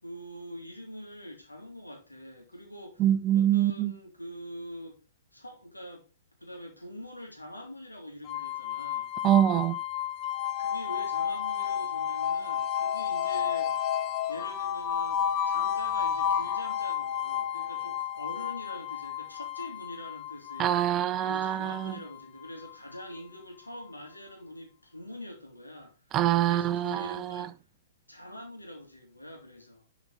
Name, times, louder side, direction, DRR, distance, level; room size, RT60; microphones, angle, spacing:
voice 1, 0.0-3.0 3.3-5.0 5.3-6.1 6.4-9.1 10.6-13.7 14.3-20.7 21.2-26.0 26.4-27.5 28.1-29.8, equal, 85° left, 3.1 m, -44 dB
voice 2, 3.0-3.9 9.2-9.8 20.6-22.0 26.1-27.5, right 12 dB, 25° right, 0.5 m, -25 dB
sound 1, 8.3-23.2, left 9 dB, 30° left, 0.8 m, -32 dB
11.5 x 5.2 x 4.0 m
figure-of-eight pair, 110°, 0 cm